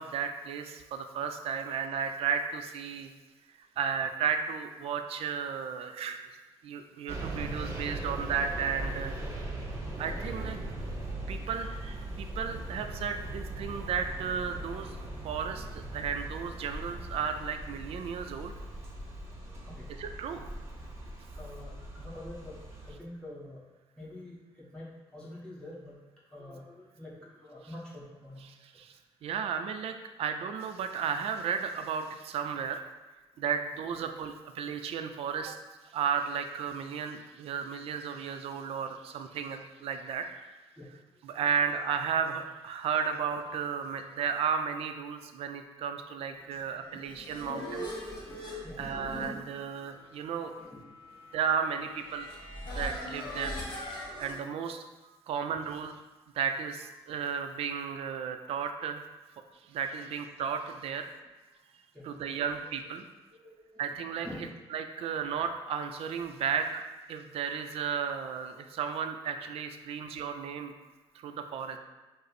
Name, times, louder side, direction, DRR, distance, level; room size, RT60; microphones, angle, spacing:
voice 1, 0.0-3.1 3.6-6.2 6.6-9.2 10.0-10.6 11.3-15.0 15.2-18.5 20.0-20.5 28.4-32.8 33.4-35.6 35.9-40.3 41.2-47.9 48.5-50.5 51.3-52.3 52.7-53.6 54.2-56.0 56.3-59.1 59.6-61.1 62.0-63.0 63.8-64.3 64.7-70.7 71.1-71.8, right 7 dB, 70° right, 7 dB, 0.4 m, -34 dB
sound 1, 7.1-22.9, right 1 dB, 25° right, 0.9 m, -39 dB
voice 2, 21.3-22.5 22.8-23.6 24.0-25.9 26.3-28.4 40.8-40.9 46.9-47.3 48.3-48.4 48.6-48.8 50.6-50.8 61.9-62.5 63.3-63.8 64.2-64.5, left 1 dB, 10° left, -8 dB, 1.4 m, -46 dB
sound 2, 46.8-54.4, left 1 dB, 45° left, 1.3 m, -41 dB
5.2 x 2.0 x 4.1 m, 1.2 s
cardioid pair, 115°, 10 cm